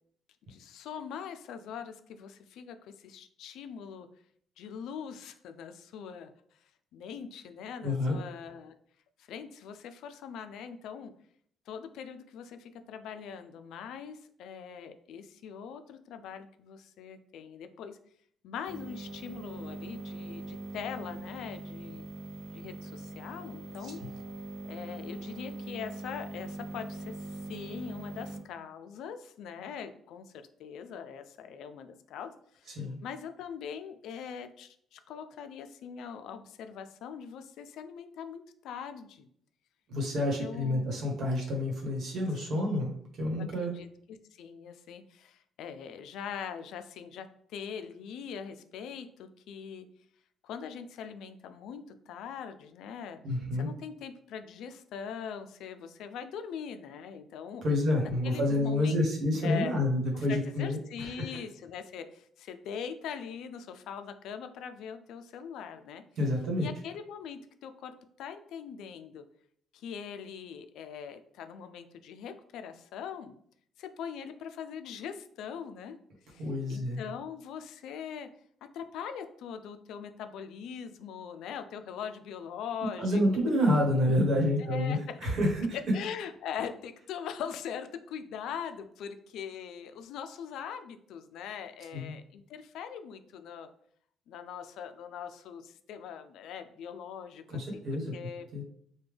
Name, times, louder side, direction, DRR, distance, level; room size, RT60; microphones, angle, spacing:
voice 1, 0.5-4.1 4.6-6.3 6.9-8.7 9.2-11.1 11.7-18.0 18.4-22.1 22.5-24.0 24.6-30.3 30.6-39.3 40.4-40.9 42.5-42.8 43.2-49.9 50.4-53.2 53.5-57.6 58.2-59.0 59.4-59.8 60.3-66.0 66.6-69.2 69.7-73.3 73.8-76.0 76.3-78.3 78.7-83.2 84.6-85.0 85.7-93.7 94.3-98.5, left 7 dB, 75° left, 9 dB, 0.3 m, -42 dB
voice 2, 7.8-8.2 23.8-23.9 32.7-33.0 39.9-43.7 53.2-53.7 57.6-61.3 66.2-66.7 76.4-77.0 83.0-85.8 91.9-92.1 97.5-98.1 98.5-98.6, left 1 dB, 55° right, 0 dB, 1.1 m, -28 dB
sound 1, 18.6-28.4, right 2 dB, 90° right, 1.1 m, -42 dB
3.4 x 2.2 x 3.3 m, 0.63 s
cardioid pair, 140°, 0 cm